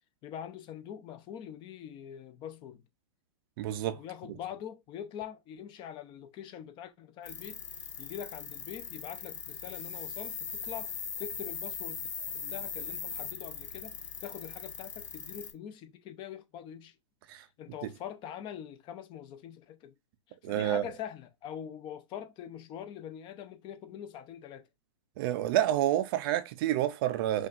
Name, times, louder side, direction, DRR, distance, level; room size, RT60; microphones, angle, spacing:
voice 1, 0.2-2.8 3.9-12.0 12.3-13.9 14.2-17.0 17.6-19.9 20.3-24.7, left 9 dB, 30° left, 0.7 m, -44 dB
voice 2, 3.6-4.0 17.3-17.4 20.4-20.8 25.2-27.5, right 12 dB, 50° right, 0.5 m, -28 dB
sound 1, 7.2-15.5, left 6 dB, 85° left, 1.2 m, -40 dB
5.6 x 2.5 x 2.5 m
hypercardioid pair, 135°, 16 cm